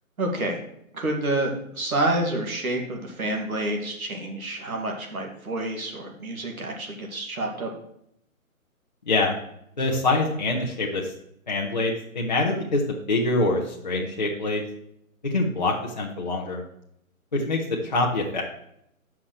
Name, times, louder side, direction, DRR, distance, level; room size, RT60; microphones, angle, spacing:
voice 1, 0.2-0.6 0.9-7.7, right 1 dB, 85° right, 1 dB, 2.4 m, -28 dB
voice 2, 9.8-11.1 11.5-14.7 15.2-16.6 17.3-18.4, left 2 dB, 30° left, -3 dB, 0.8 m, -25 dB
6.1 x 5.9 x 6.5 m, 0.75 s
hypercardioid pair, 175°, 42 cm